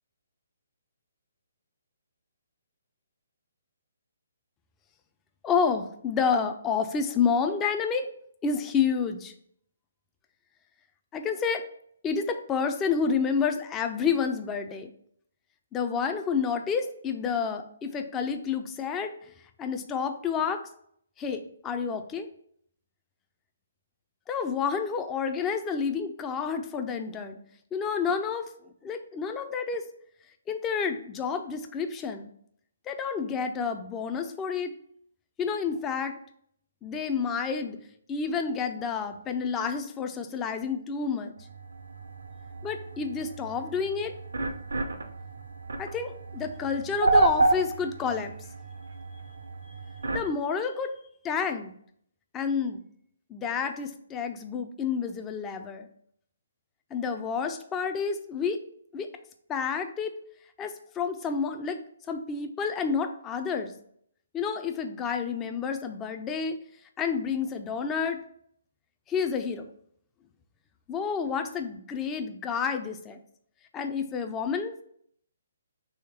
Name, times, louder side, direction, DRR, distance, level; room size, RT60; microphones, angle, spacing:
voice 1, 5.4-8.1 8.4-9.3 11.1-11.6 12.0-14.9 15.7-19.1 19.6-20.7 21.2-22.3 24.3-27.4 27.7-28.5 28.8-29.9 30.5-32.3 32.9-34.7 35.4-36.2 36.8-37.8 38.1-41.3 42.6-44.1 45.8-48.3 50.1-50.9 51.2-51.7 52.3-52.8 53.3-55.9 56.9-58.6 58.9-59.1 59.5-60.1 60.6-61.8 62.1-63.7 64.3-66.6 67.0-68.2 69.1-69.6 70.9-73.2 73.7-74.8, left 6 dB, 15° left, 6 dB, 0.3 m, -29 dB
sound 1, 41.4-50.3, right 3 dB, 80° right, 0.5 m, -30 dB
3.5 x 3.1 x 4.3 m, 0.65 s
figure-of-eight pair, 140°, 0 cm